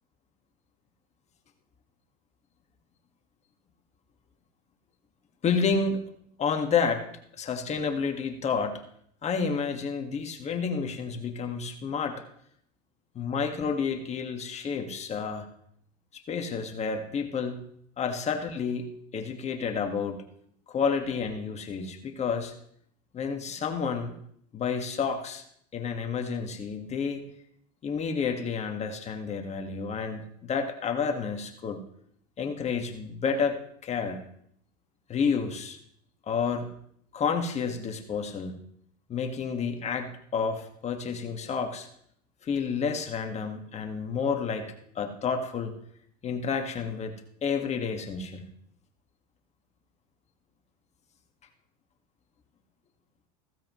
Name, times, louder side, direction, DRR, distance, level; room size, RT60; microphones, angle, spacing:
voice 1, 5.4-6.1 6.4-7.1 7.4-8.8 9.2-12.2 13.2-15.5 16.1-17.6 18.0-20.2 20.7-22.5 23.1-24.1 24.5-25.4 25.7-27.2 27.8-31.8 32.4-34.2 35.1-35.8 36.2-36.7 37.1-38.6 39.1-41.9 42.4-45.8 46.2-47.2 47.4-48.5, left 5 dB, 35° left, 5 dB, 1.8 m, -30 dB
16.0 x 15.0 x 3.2 m, 0.68 s
supercardioid pair, 105°, 20 cm